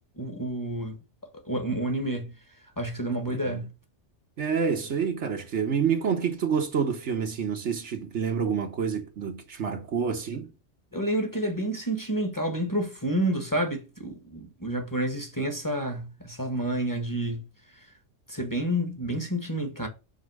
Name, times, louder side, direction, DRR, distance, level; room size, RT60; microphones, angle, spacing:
voice 1, 0.2-1.0 1.4-2.3 2.8-3.7 10.9-17.4 17.8-17.9 18.3-19.9, right 1 dB, 15° left, 1.4 m, -29 dB
voice 2, 3.3-3.6 4.4-10.5, right 6 dB, 70° right, 1.4 m, -28 dB
5.5 x 4.3 x 6.3 m
omnidirectional pair, 1.3 m